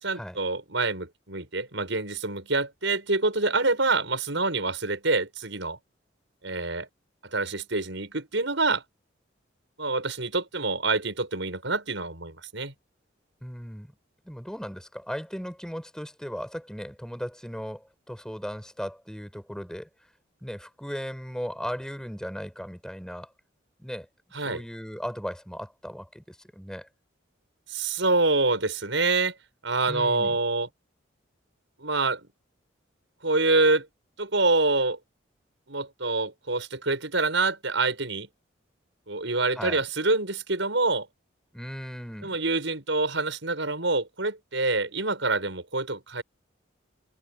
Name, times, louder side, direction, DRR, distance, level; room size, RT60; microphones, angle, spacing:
voice 1, 0.0-5.8 6.4-6.9 7.2-8.8 9.8-12.7 24.3-24.6 27.7-29.3 29.6-30.7 31.8-32.2 33.2-33.9 34.2-35.0 35.7-38.3 39.1-41.1 42.2-46.2, right 3 dB, 70° right, 6.2 m, -26 dB
voice 2, 13.4-14.0 14.3-19.9 20.4-23.3 23.8-24.1 24.4-26.9 29.9-30.4 39.5-39.8 41.5-42.4, equal, 5° left, 7.0 m, -37 dB
head